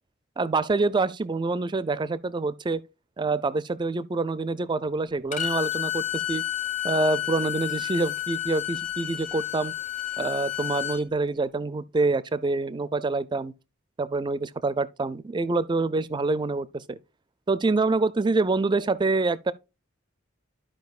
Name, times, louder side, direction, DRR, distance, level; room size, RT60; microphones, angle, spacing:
voice 1, 0.4-2.8 3.2-6.4 6.8-9.7 10.2-13.5 14.0-17.0 17.5-19.5, right 3 dB, 25° right, 0.4 m, -26 dB
Bowed string instrument, 5.3-11.0, left 12 dB, 40° left, 0.8 m, -30 dB
13.0 x 4.9 x 2.4 m
head